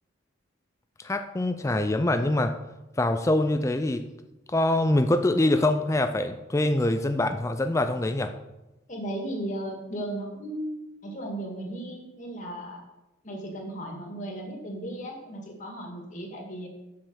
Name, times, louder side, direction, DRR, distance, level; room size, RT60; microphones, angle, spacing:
voice 1, 1.0-2.5 3.0-4.1 4.5-8.3, left 1 dB, 15° left, 8 dB, 0.4 m, -24 dB
voice 2, 8.9-12.8 13.2-16.7, right 1 dB, 40° left, 1 dB, 2.2 m, -36 dB
7.5 x 6.8 x 6.9 m, 1.0 s
head